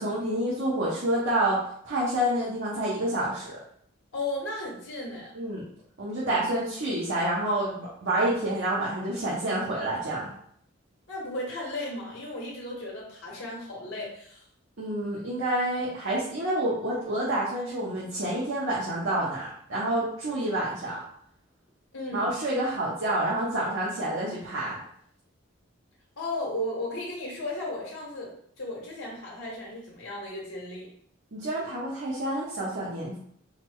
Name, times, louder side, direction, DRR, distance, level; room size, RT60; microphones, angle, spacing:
voice 1, 0.0-1.6 1.8-3.5 5.3-5.6 6.0-10.3 14.8-21.0 22.1-24.8 31.3-33.2, right 1 dB, 65° right, -6 dB, 0.9 m, -28 dB
voice 2, 4.1-5.3 11.1-14.4 21.9-22.4 26.2-30.9, left 1 dB, 85° left, -3 dB, 1.3 m, -35 dB
4.0 x 2.1 x 4.5 m, 0.64 s
head